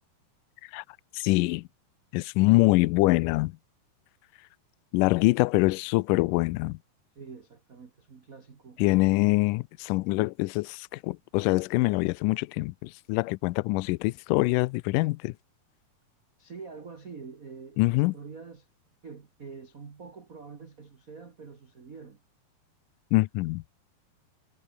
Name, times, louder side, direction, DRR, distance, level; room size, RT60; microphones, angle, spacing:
voice 1, 1.1-1.7 2.1-3.6 4.9-6.8 8.8-15.3 17.8-18.1 23.1-23.6, left 22 dB, 85° left, 1.9 m, -24 dB
voice 2, 7.1-8.8 16.4-18.7 19.0-22.2, right 5 dB, 85° right, 0.7 m, -45 dB
omnidirectional pair, 4.3 m